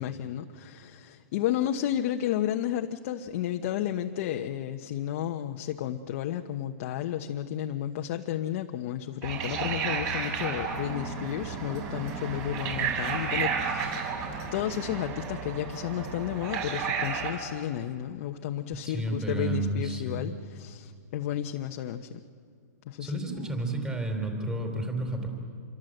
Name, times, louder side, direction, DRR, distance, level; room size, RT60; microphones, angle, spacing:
voice 1, 0.0-14.1 14.5-22.2 22.9-23.4, left 11 dB, 45° left, 4 dB, 1.1 m, -32 dB
sound 1, 9.2-17.3, right 6 dB, 35° right, 6.7 m, -32 dB
voice 2, 18.8-20.3 23.0-25.3, right 2 dB, 10° right, 4 dB, 4.1 m, -31 dB
27.5 x 23.5 x 8.0 m, 2.3 s
hypercardioid pair, 145°, 10 cm